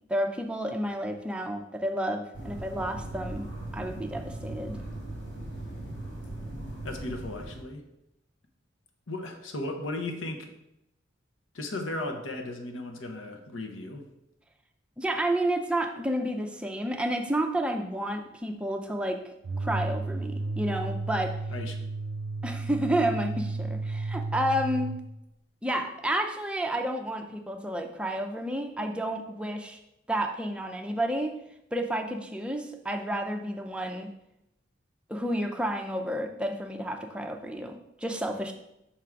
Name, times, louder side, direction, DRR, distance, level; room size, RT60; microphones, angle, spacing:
voice 1, 0.1-3.5 3.7-4.8 15.0-19.2 19.6-21.4 22.4-24.9 25.6-29.8 30.1-31.3 31.7-34.1 35.1-38.5, right 1 dB, 5° right, 3 dB, 0.4 m, -30 dB
sound 1, 2.3-7.6, right 1 dB, 70° left, 2.1 m, -39 dB
voice 2, 6.8-7.8 9.1-10.5 11.5-14.0 21.5-21.8, left 2 dB, 90° left, 4 dB, 0.9 m, -36 dB
sound 2, 19.4-25.1, right 3 dB, 90° right, 0.5 m, -33 dB
5.8 x 3.7 x 4.6 m, 0.84 s
head